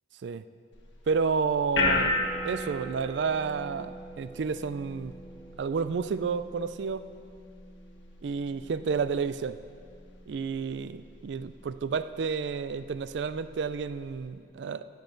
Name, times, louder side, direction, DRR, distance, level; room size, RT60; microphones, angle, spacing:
sound 1, 0.7-14.3, left 2 dB, 90° left, 1.5 m, -36 dB
voice 1, 1.1-2.2 2.4-5.2 5.6-7.1 8.2-9.6 10.3-14.9, right 5 dB, 70° right, 13 dB, 0.4 m, -30 dB
16.5 x 11.0 x 3.9 m, 2.3 s
head